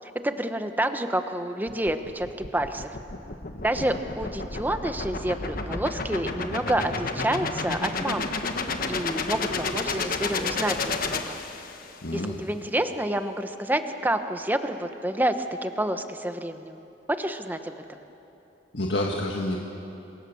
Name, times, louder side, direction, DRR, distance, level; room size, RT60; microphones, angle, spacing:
voice 1, 0.0-3.0 3.6-8.4 8.9-11.4 12.1-15.3 15.6-16.8 17.2-17.7, right 1 dB, 10° right, 8 dB, 1.1 m, -28 dB
sound 1, 1.7-12.0, left 4 dB, 50° left, 1.4 m, -31 dB
voice 2, 3.6-3.9 12.0-12.4 18.7-19.6, left 1 dB, 70° left, 0 dB, 1.8 m, -29 dB
27.5 x 23.5 x 7.1 m, 2.9 s
head